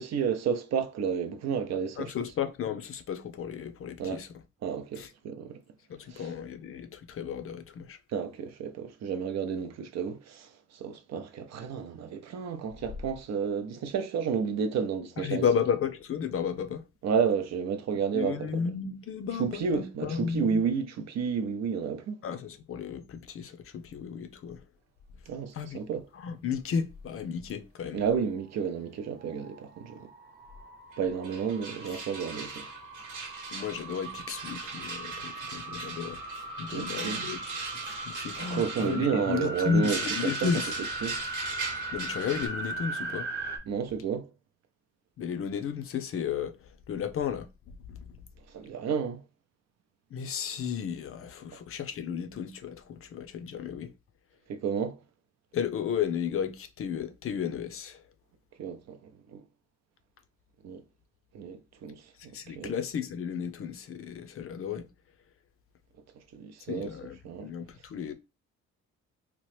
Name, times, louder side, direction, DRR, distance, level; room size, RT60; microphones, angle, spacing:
voice 1, 0.0-2.1 4.0-4.2 4.6-5.6 6.1-6.3 8.1-15.5 17.0-18.5 19.4-22.2 25.3-26.1 27.9-30.1 31.0-32.7 36.7-37.3 38.4-40.5 41.0-41.2 43.7-44.3 48.5-49.2 54.5-55.0 58.6-59.0 59.3-59.4 60.6-60.8 61.3-62.0 62.6-62.7 66.3-66.9 67.2-67.5, right 6 dB, 60° right, 0.6 m, -31 dB
voice 2, 2.0-4.3 5.0-5.1 5.9-8.0 15.2-16.8 18.1-20.6 22.2-24.6 25.5-25.8 26.1-28.0 31.9-32.0 33.5-36.2 36.6-37.4 37.8-40.7 41.9-43.3 45.2-46.6 46.9-48.1 50.1-53.9 55.5-58.0 62.3-64.9 66.7-68.1, left 7 dB, 45° left, 0.5 m, -33 dB
sound 1, 29.1-43.6, right 1 dB, 35° right, 0.9 m, -39 dB
sound 2, 30.9-31.0 31.2-42.5, right 4 dB, 90° right, 1.1 m, -39 dB
3.0 x 2.0 x 3.1 m
cardioid pair, 90°, 30 cm